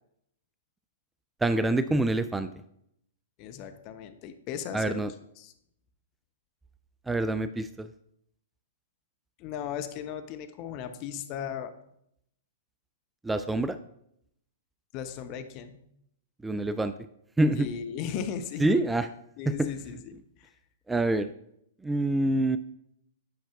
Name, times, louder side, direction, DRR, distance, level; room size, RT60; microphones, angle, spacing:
voice 1, 1.4-2.5 4.7-5.1 7.1-7.9 13.2-13.8 16.4-16.9 17.4-17.7 18.6-19.1 19.5-19.7 20.9-21.3 21.8-22.6, right 2 dB, 10° right, 11 dB, 0.3 m, -26 dB
voice 2, 3.4-5.0 5.4-5.5 9.4-11.7 14.9-15.8 17.5-18.7 19.4-20.5, left 8 dB, 40° left, 9 dB, 0.6 m, -37 dB
9.5 x 5.6 x 2.4 m, 0.74 s
hypercardioid pair, 115°, 0 cm